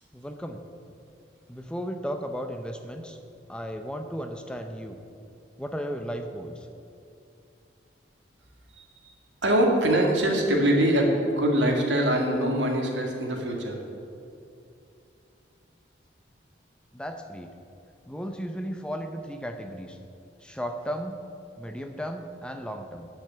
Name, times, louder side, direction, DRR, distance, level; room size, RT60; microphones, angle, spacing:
voice 1, 0.1-0.6 1.5-3.2 3.5-5.0 5.6-6.7 16.9-17.5 18.1-20.0 20.4-21.1 21.6-23.1, equal, 5° left, 6 dB, 0.6 m, -35 dB
voice 2, 9.4-13.8, right 1 dB, 80° right, 1 dB, 2.0 m, -23 dB
9.9 x 6.6 x 8.6 m, 2.7 s
head